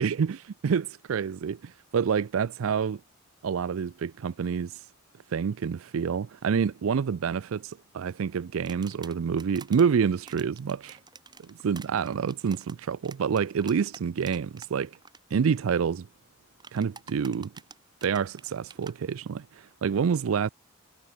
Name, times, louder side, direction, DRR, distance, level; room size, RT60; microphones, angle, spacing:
voice 1, 0.0-3.0 3.4-4.9 5.3-11.0 11.4-14.9 15.3-16.1 16.7-17.5 18.0-20.5, right 6 dB, 80° right, 0.4 m, -28 dB
sound 1, 8.7-9.8 10.3-14.7 14.9-15.2 16.6-18.9, right 4 dB, 20° right, 3.0 m, -48 dB
head